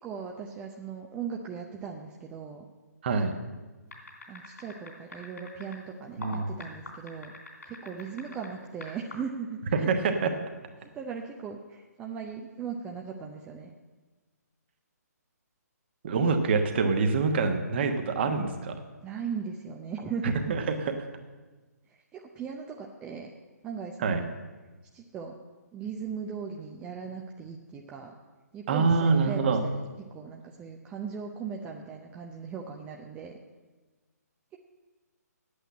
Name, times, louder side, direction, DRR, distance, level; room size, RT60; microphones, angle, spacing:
voice 1, 0.0-2.6 4.3-7.3 7.6-9.9 10.8-13.7 19.0-20.6 22.1-23.3 23.6-24.3 24.9-25.3 25.7-28.1 28.5-33.3, right 6 dB, 10° right, 1 dB, 0.5 m, -38 dB
voice 2, 3.0-3.3 6.2-6.5 9.7-10.3 16.0-18.7 20.5-20.6 24.0-24.2 28.7-29.6, right 4 dB, 40° right, 6 dB, 1.2 m, -25 dB
sound 1, 3.9-5.8 6.2-8.5 8.8-9.1, left 2 dB, 70° left, 3.4 m, -42 dB
8.5 x 7.9 x 8.6 m, 1.3 s
figure-of-eight pair, 140°, 9 cm